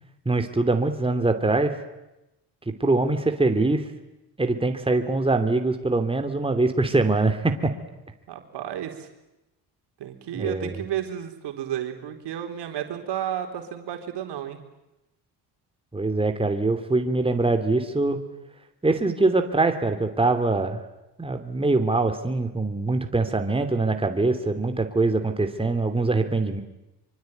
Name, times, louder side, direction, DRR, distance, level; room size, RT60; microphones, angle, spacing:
voice 1, 0.2-1.8 2.8-3.8 4.4-7.7 10.3-10.7 15.9-18.2 18.8-20.8 21.2-26.6, right 3 dB, 15° right, 6 dB, 3.0 m, -23 dB
voice 2, 8.3-9.1 10.0-14.6, right 10 dB, 70° right, 5 dB, 4.1 m, -32 dB
25.5 x 24.0 x 9.3 m, 0.95 s
cardioid pair, 90°, 42 cm